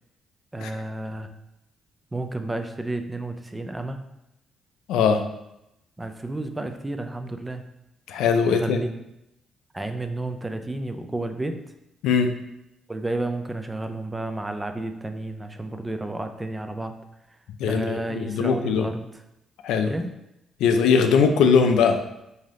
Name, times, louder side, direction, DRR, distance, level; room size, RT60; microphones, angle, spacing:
voice 1, 0.5-1.3 2.1-4.0 6.0-7.6 8.5-8.9 9.7-11.6 12.9-17.0 17.6-19.1 19.9-20.2, right 2 dB, 15° right, 7 dB, 0.3 m, -31 dB
voice 2, 4.9-5.2 8.1-8.8 12.0-12.3 17.6-18.9 19.6-19.9 20.6-22.0, left 6 dB, 90° left, 7 dB, 0.3 m, -20 dB
3.3 x 2.7 x 3.6 m, 0.86 s
cardioid pair, 90°, 0 cm